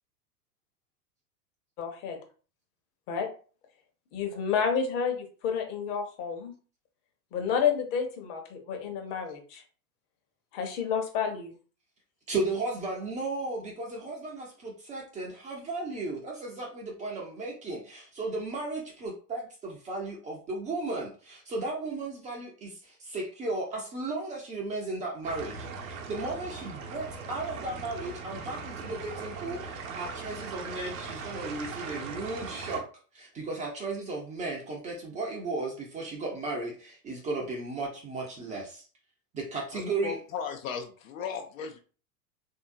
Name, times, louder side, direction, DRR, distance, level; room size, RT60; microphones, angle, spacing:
voice 1, 1.8-2.2 3.1-3.3 4.1-6.5 7.3-9.6 10.5-11.5, left 7 dB, 40° left, 4 dB, 1.0 m, -30 dB
voice 2, 12.3-32.8 33.1-38.8 39.3-40.2, right 2 dB, 15° right, -1 dB, 0.6 m, -35 dB
sound 1, 25.2-32.8, right 4 dB, 60° right, 0.8 m, -39 dB
voice 3, 39.7-41.8, left 7 dB, 60° left, 4 dB, 0.6 m, -36 dB
3.4 x 2.7 x 2.5 m, 0.39 s
figure-of-eight pair, 90°, 46 cm